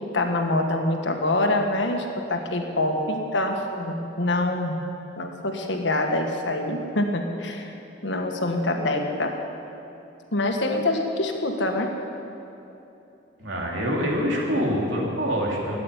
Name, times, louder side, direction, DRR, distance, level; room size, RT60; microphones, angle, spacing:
voice 1, 0.1-4.7 5.2-7.7 8.0-9.3 10.3-11.9, left 2 dB, 80° left, 3 dB, 1.6 m, -25 dB
voice 2, 13.4-15.8, equal, 80° right, -2 dB, 3.0 m, -25 dB
13.5 x 8.9 x 9.9 m, 2.9 s
head